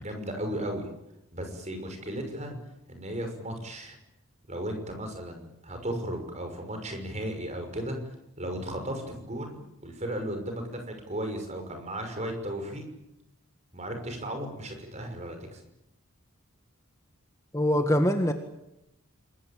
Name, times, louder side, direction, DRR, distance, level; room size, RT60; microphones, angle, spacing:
voice 1, 0.0-0.8 1.3-2.6 2.9-4.0 4.5-8.0 8.4-12.8 13.7-15.6, right 1 dB, 30° right, 5 dB, 6.0 m, -35 dB
voice 2, 17.5-18.3, equal, 15° left, 5 dB, 1.7 m, -23 dB
28.0 x 21.5 x 8.7 m, 0.84 s
head